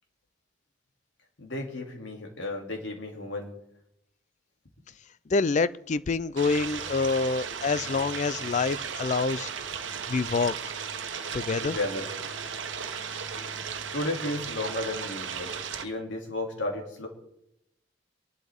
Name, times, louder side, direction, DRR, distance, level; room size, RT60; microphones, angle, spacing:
voice 1, 1.4-3.5 11.6-12.1 13.9-15.5 15.8-17.1, left 2 dB, 75° left, 2.7 m, -33 dB
voice 2, 5.3-9.5 10.1-10.5 11.3-11.8, left 4 dB, 40° left, 0.4 m, -26 dB
sound 1, 6.4-15.8, right 6 dB, 80° right, 1.1 m, -36 dB
24.5 x 11.5 x 3.6 m
head